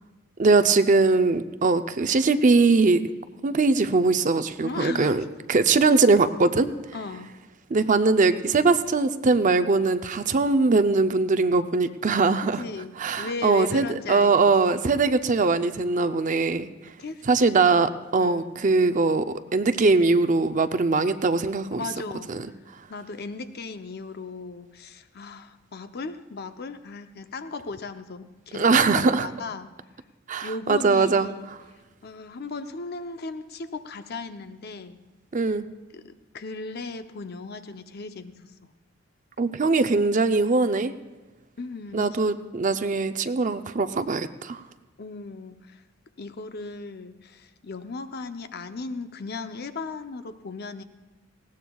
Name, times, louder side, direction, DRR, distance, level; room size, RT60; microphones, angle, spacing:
voice 1, 0.4-3.0 3.4-5.2 5.5-6.7 7.7-12.6 13.0-16.7 17.3-19.3 19.5-21.8 22.3-22.4 28.5-29.3 30.3-31.3 35.3-35.7 39.4-40.9 41.9-44.6, right 3 dB, 40° right, 10 dB, 0.5 m, -21 dB
voice 2, 4.6-5.2 6.9-7.3 12.6-14.3 14.6-14.8 17.0-18.5 21.7-22.5 22.9-29.7 30.4-31.5 32.0-35.0 35.9-38.7 41.6-42.2 45.0-45.8 46.2-50.8, left 3 dB, 55° left, 9 dB, 0.7 m, -37 dB
19.5 x 17.0 x 2.3 m, 1.2 s
head